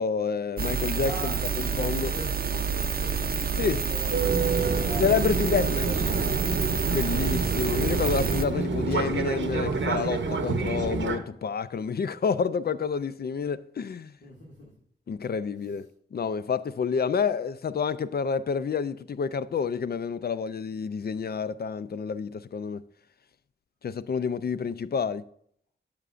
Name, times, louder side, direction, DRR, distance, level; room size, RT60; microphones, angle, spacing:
voice 1, 0.0-2.1 3.6-3.8 5.0-5.9 6.9-14.1 15.1-22.8 23.8-25.2, left 6 dB, 55° left, 0.4 m, -29 dB
sound 1, 0.6-8.4, right 6 dB, 50° right, 0.5 m, -28 dB
voice 2, 1.0-5.0 5.4-6.4 14.2-14.7, left 1 dB, 75° left, 2.1 m, -41 dB
Fixed-wing aircraft airplane, 4.1-11.2, right 4 dB, 80° right, 0.8 m, -28 dB
10.5 x 6.8 x 2.5 m
cardioid pair, 50°, 19 cm